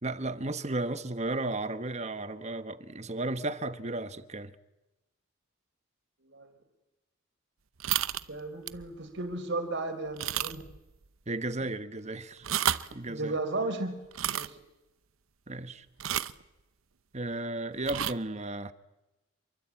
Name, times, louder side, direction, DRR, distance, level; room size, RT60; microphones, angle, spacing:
voice 1, 0.0-4.5 11.3-12.5 12.9-13.3 15.5-15.9 17.1-18.7, right 2 dB, 35° right, 1.2 m, -34 dB
sound 1, 7.8-8.3 8.7-8.9 9.3-9.4 10.2-10.8 11.0-11.1 12.3-12.9 14.1-14.5 16.0-16.4 17.8-18.1, right 11 dB, 85° right, 0.9 m, -31 dB
voice 2, 8.3-10.6 13.1-14.0 14.3-14.6, right 2 dB, 60° right, 4.2 m, -34 dB
27.5 x 23.5 x 8.5 m
head